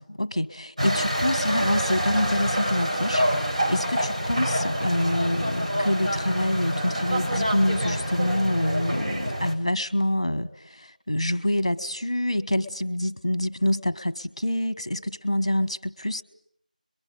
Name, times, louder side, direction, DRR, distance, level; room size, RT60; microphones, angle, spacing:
voice 1, 0.0-16.2, left 1 dB, 30° left, 1.3 m, -26 dB
sound 1, 0.8-9.5, equal, 50° right, 6.6 m, -27 dB
27.0 x 23.0 x 9.0 m
figure-of-eight pair, 180°, 5 cm